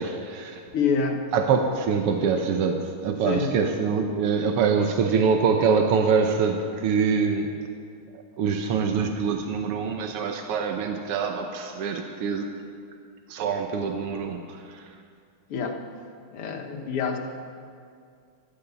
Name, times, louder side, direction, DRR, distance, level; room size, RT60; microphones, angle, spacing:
voice 1, 0.0-0.6 1.3-7.5 8.4-12.5 13.3-14.8, right 5 dB, 85° right, 4 dB, 1.9 m, -24 dB
voice 2, 0.7-1.2 3.3-3.5 15.5-15.8 16.3-17.2, left 5 dB, 85° left, 3 dB, 2.3 m, -26 dB
15.0 x 12.5 x 6.9 m, 2.2 s
omnidirectional pair, 2.4 m